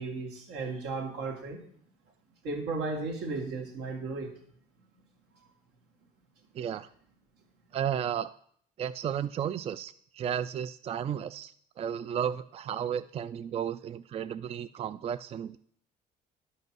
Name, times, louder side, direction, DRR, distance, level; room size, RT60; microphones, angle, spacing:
voice 1, 0.0-1.6 2.4-4.3, right 3 dB, 90° right, 1 dB, 2.5 m, -35 dB
voice 2, 6.5-6.9 7.7-8.3 8.8-15.6, right 9 dB, 35° right, 15 dB, 0.3 m, -33 dB
11.0 x 5.5 x 6.0 m, 0.62 s
cardioid pair, 110°, 17 cm